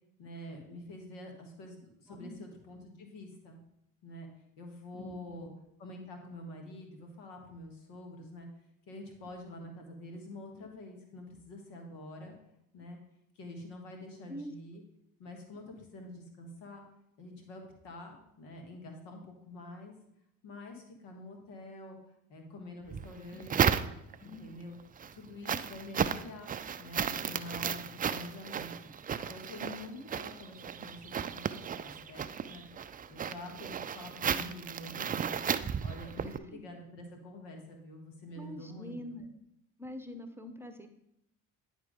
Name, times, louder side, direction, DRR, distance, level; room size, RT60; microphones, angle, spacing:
voice 1, 0.2-3.6 4.0-4.3 4.6-5.5 5.8-8.5 8.9-12.4 12.7-13.0 13.3-14.8 15.2-16.8 17.2-19.9 20.4-23.9 24.2-24.8 25.1-26.5 26.8-32.7 33.1-39.2, left 1 dB, 80° left, 3 dB, 1.6 m, -47 dB
voice 2, 2.1-2.4 4.9-5.5 14.3-14.5 23.3-23.6 24.2-24.5 35.6-35.8 36.2-36.6 38.3-39.3 39.8-40.9, left 1 dB, 5° right, 6 dB, 0.9 m, -45 dB
sound 1, 22.9-24.3 24.8-36.4, right 7 dB, 25° right, 0.3 m, -34 dB
9.8 x 3.7 x 5.1 m, 0.79 s
hypercardioid pair, 60°, 42 cm